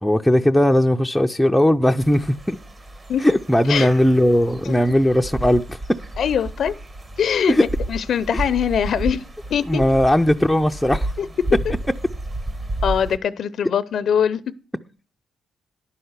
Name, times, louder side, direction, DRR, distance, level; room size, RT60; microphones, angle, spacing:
voice 1, 0.0-2.6 3.2-5.8 7.5-7.6 9.7-11.1, left 1 dB, 5° left, 0.5 m, -18 dB
sound 1, 2.0-13.2, right 1 dB, 30° right, 1.4 m, -31 dB
voice 2, 6.2-6.7 7.2-7.6 7.9-9.2 9.5-9.8 11.2-11.3 12.8-14.4, left 8 dB, 60° left, 0.6 m, -22 dB
11.0 x 5.6 x 8.0 m
cardioid pair, 90°, 0 cm